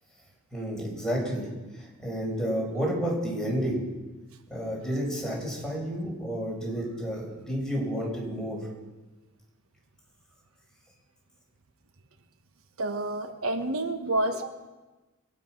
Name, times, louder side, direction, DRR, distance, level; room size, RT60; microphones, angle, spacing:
voice 1, 0.5-1.5 1.7-3.8 4.5-8.6, equal, 5° left, -3 dB, 5.1 m, -30 dB
voice 2, 12.8-14.7, right 2 dB, 85° right, 7 dB, 1.2 m, -29 dB
22.5 x 9.7 x 6.0 m, 1.2 s
head